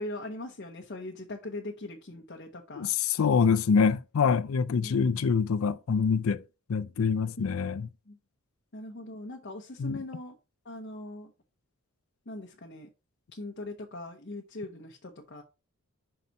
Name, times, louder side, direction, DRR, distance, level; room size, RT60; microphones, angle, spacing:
voice 1, 0.0-2.9 4.7-5.3 7.3-7.6 8.1-8.2 8.7-10.4 10.6-11.3 12.3-12.9 13.3-15.4, left 2 dB, 50° left, 0.9 m, -40 dB
voice 2, 2.8-6.4 6.7-7.9 9.8-10.0, left 5 dB, 65° left, 0.4 m, -25 dB
5.8 x 4.0 x 4.6 m
head